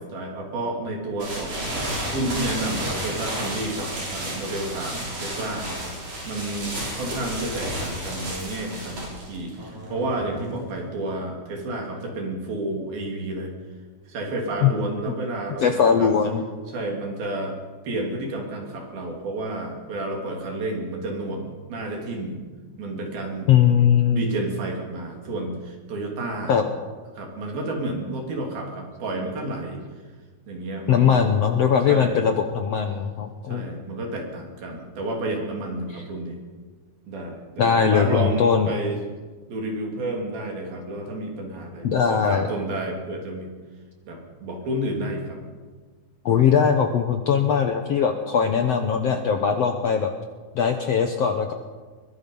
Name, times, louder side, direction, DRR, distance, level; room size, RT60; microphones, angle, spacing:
voice 1, 0.0-1.7 2.1-5.9 6.2-13.5 14.1-16.1 16.7-17.6 17.8-22.4 22.8-23.5 24.1-26.6 27.2-29.8 30.5-31.2 31.9-32.2 33.5-36.4 37.1-39.0 39.5-43.5 44.1-45.4, right 2 dB, 70° right, 1 dB, 4.7 m, -31 dB
sound 1, 1.2-10.8, right 1 dB, 55° right, 8.9 m, -32 dB
voice 2, 15.6-16.4 23.5-24.2 26.5-26.7 30.9-33.7 35.9-36.0 37.6-38.7 41.8-42.5 46.2-50.1 50.5-51.5, left 7 dB, 80° left, 5 dB, 1.4 m, -20 dB
22.5 x 21.5 x 5.5 m, 1.4 s
omnidirectional pair, 4.5 m